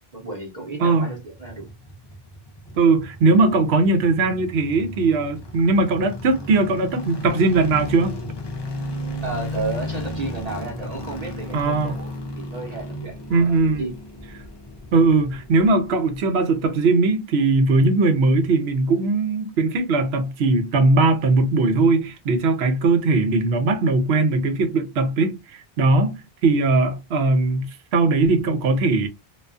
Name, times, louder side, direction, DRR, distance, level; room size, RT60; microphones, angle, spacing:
voice 1, 0.1-1.7 9.2-13.9, right 3 dB, 40° right, 0.9 m, -33 dB
sound 1, 1.3-16.4 16.6-16.7, left 1 dB, 40° left, 0.4 m, -34 dB
voice 2, 2.8-8.2 11.5-11.9 13.3-13.8 14.9-27.7 27.9-29.1, right 3 dB, 90° right, 0.9 m, -19 dB
2.3 x 2.2 x 2.4 m
omnidirectional pair, 1.0 m